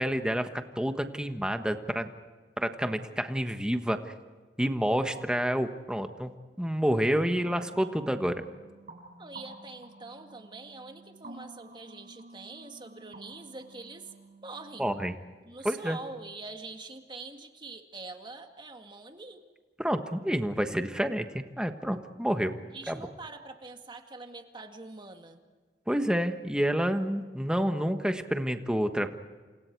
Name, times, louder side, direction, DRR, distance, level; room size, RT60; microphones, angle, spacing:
voice 1, 0.0-2.1 2.6-4.1 4.6-6.3 6.6-8.3 14.8-15.1 15.6-16.0 19.8-22.6 22.9-23.0 25.9-29.1, equal, 5° right, 7 dB, 1.3 m, -29 dB
sound 1, 7.5-15.0, right 2 dB, 45° right, 7.3 m, -51 dB
voice 2, 9.2-14.1 14.4-14.9 15.4-19.4 22.7-25.4, right 3 dB, 25° right, 5 dB, 2.0 m, -44 dB
29.5 x 27.5 x 4.7 m, 1.4 s
head